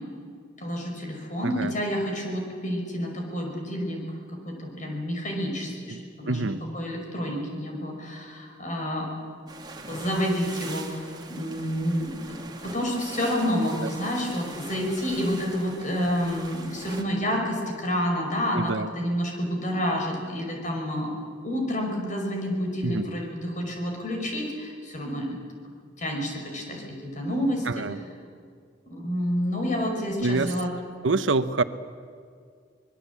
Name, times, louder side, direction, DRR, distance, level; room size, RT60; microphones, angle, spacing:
voice 1, 0.6-4.0 4.3-9.1 9.9-12.2 12.6-21.1 21.4-25.4 26.0-27.9 28.9-30.7, equal, 40° left, 1 dB, 5.6 m, -29 dB
voice 2, 1.4-1.7 5.9-6.0 6.3-6.6 13.7-13.9 18.5-18.9 22.8-23.1 27.7-28.0 30.2-30.5 31.0-31.6, right 3 dB, 85° right, 12 dB, 0.9 m, -26 dB
sound 1, 9.5-17.0, right 3 dB, 25° right, 2.4 m, -42 dB
24.5 x 21.0 x 8.4 m, 2.1 s
head